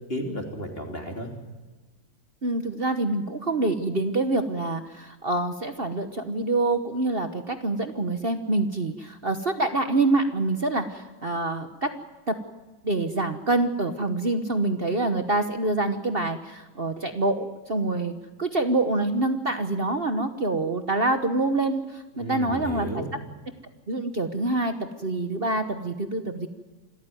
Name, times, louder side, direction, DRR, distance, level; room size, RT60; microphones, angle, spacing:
voice 1, 0.1-1.3 22.1-23.1, equal, 30° left, 3 dB, 3.2 m, -33 dB
voice 2, 2.4-11.9 12.3-12.4 12.8-18.1 18.4-23.0 23.9-26.5, right 2 dB, 35° right, 8 dB, 1.1 m, -26 dB
26.5 x 14.0 x 9.3 m, 1.2 s
omnidirectional pair, 2.1 m